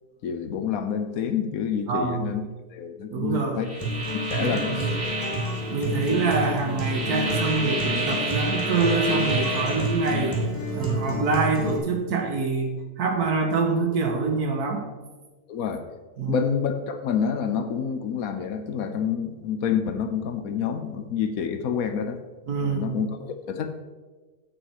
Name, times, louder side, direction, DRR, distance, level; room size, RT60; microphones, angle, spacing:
voice 1, 0.2-2.4 2.7-3.8 4.3-4.9 15.5-15.8 16.3-22.2 22.6-23.8, left 7 dB, 70° left, 8 dB, 1.2 m, -28 dB
voice 2, 1.9-2.3 3.1-3.7 4.4-5.0 5.7-10.4 10.7-14.8 16.2-16.4 22.5-23.0, right 4 dB, 80° right, 2 dB, 1.9 m, -25 dB
sound 1, 3.6-10.4, right 1 dB, 50° right, 3.0 m, -31 dB
Acoustic guitar, 3.8-11.8, equal, 10° left, 2.6 m, -29 dB
8.8 x 8.3 x 4.8 m, 1.3 s
omnidirectional pair, 1.6 m